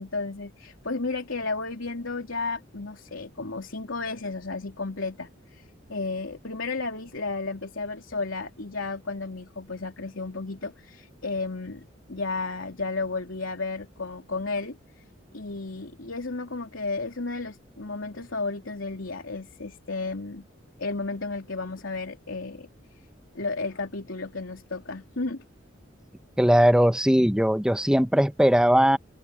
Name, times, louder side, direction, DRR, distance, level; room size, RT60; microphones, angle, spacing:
voice 1, 0.0-14.8 15.3-20.4 20.8-22.7 23.3-25.4, left 3 dB, 80° left, 3.4 m, -33 dB
voice 2, 26.4-29.0, equal, 5° right, 1.0 m, -19 dB
head